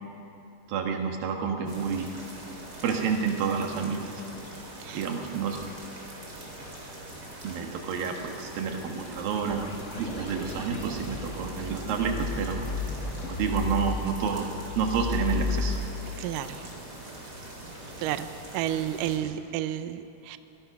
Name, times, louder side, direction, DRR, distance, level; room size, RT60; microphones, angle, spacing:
voice 1, 0.7-2.1 2.8-4.2 4.9-5.6 7.4-9.7 10.0-12.7 13.3-15.8 19.2-19.3, right 6 dB, 65° right, 3 dB, 3.3 m, -29 dB
sound 1, 1.7-19.2, right 1 dB, 25° right, 4.2 m, -43 dB
sound 2, 8.9-15.8, left 5 dB, 80° left, 0.6 m, -34 dB
voice 2, 16.2-16.6 18.0-18.3 18.5-20.4, right 11 dB, 85° right, 11 dB, 1.9 m, -31 dB
25.0 x 18.5 x 6.0 m, 2.7 s
omnidirectional pair, 4.6 m